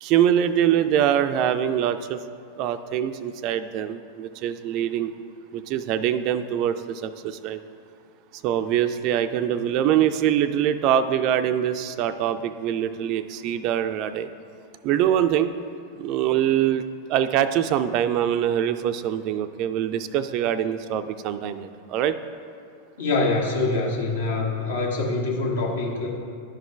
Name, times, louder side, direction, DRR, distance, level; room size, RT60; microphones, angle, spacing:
voice 1, 0.0-2.2 2.6-5.1 5.5-7.6 8.3-14.3 14.8-15.6 16.0-16.8 17.1-22.1, right 10 dB, 40° right, 11 dB, 0.3 m, -24 dB
voice 2, 23.0-26.1, left 3 dB, 65° left, -2 dB, 1.3 m, -25 dB
11.5 x 4.9 x 3.3 m, 2.3 s
figure-of-eight pair, 90°, 0 cm